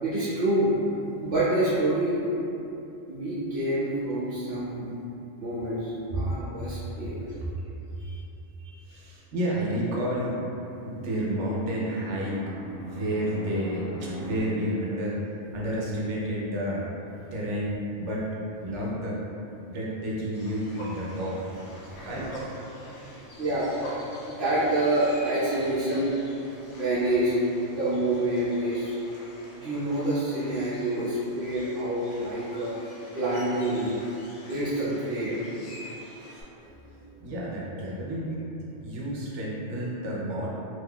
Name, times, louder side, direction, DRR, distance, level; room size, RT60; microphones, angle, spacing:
voice 1, 0.0-0.8 1.2-2.2 3.1-4.9 5.4-7.1 8.0-8.2 21.8-22.1 23.4-23.7 24.3-26.1 26.7-27.3 27.7-29.2 29.6-32.7 33.1-33.9 34.5-35.3 36.6-37.2, right 1 dB, 55° right, -13 dB, 0.9 m, -27 dB
voice 2, 7.2-7.8 8.6-10.4 10.8-12.4 12.8-15.2 15.5-16.8 17.3-18.3 18.6-19.2 19.7-21.4 22.0-22.3 37.2-38.4 38.8-40.5, equal, 75° right, -5 dB, 1.0 m, -30 dB
Fixed-wing aircraft airplane, 9.7-14.4, right 2 dB, 10° right, 1.2 m, -42 dB
sound 1, 20.3-36.4, equal, 75° left, 1.0 m, -45 dB
3.6 x 2.9 x 2.2 m, 2.8 s
omnidirectional pair, 1.2 m